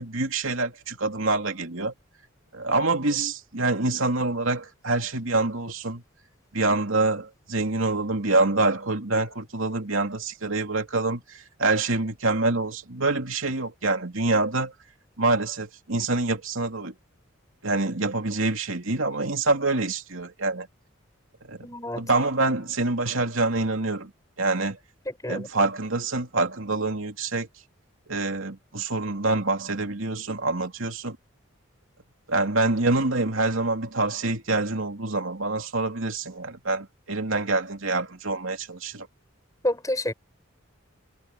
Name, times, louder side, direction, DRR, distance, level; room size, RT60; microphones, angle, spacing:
voice 1, 0.0-1.9 2.5-6.0 6.5-14.7 15.2-16.9 17.6-20.7 21.5-21.6 21.9-24.1 24.4-24.8 25.3-27.5 28.1-31.2 32.3-39.1, right 2 dB, 75° right, 2.9 m, -26 dB
voice 2, 21.6-22.1 25.1-25.5 39.6-40.1, left 1 dB, 15° left, 6.8 m, -29 dB
head